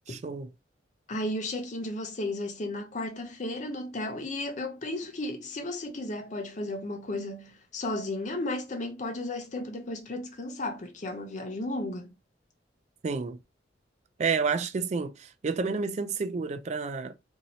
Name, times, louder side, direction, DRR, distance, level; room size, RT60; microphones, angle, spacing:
voice 1, 0.1-0.5 13.0-13.4 14.2-17.2, right 5 dB, 40° right, 0.3 m, -30 dB
voice 2, 1.1-12.1, left 1 dB, 40° left, 0.6 m, -34 dB
2.7 x 2.7 x 2.9 m
head